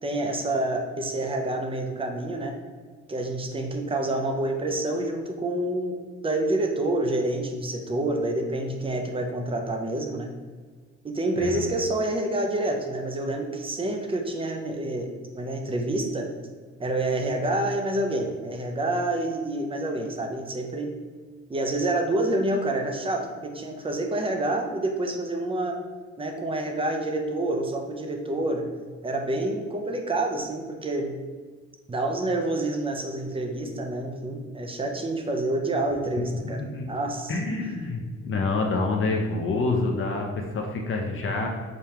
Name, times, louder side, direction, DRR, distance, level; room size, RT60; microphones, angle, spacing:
voice 1, 0.0-2.6 3.1-10.3 11.0-16.3 16.8-20.9 21.5-25.8 26.2-28.7 29.0-31.1 31.9-36.6 36.9-37.3 41.3-41.4, right 2 dB, 20° right, 3 dB, 0.6 m, -28 dB
voice 2, 37.3-41.5, left 3 dB, 45° left, 0 dB, 0.6 m, -27 dB
5.0 x 2.3 x 2.9 m, 1.5 s
cardioid pair, 90°, 30 cm